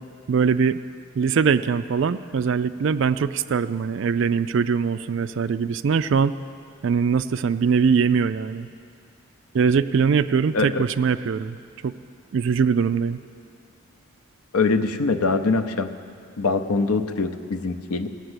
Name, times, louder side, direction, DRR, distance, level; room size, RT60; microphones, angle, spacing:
voice 1, 0.3-0.8 1.2-6.4 6.8-8.7 9.5-11.6 11.8-11.9 12.3-13.2, right 6 dB, 55° right, 13 dB, 0.3 m, -22 dB
voice 2, 14.5-15.9 16.4-18.1, left 3 dB, 85° left, 9 dB, 0.7 m, -23 dB
16.5 x 6.6 x 8.0 m, 2.3 s
head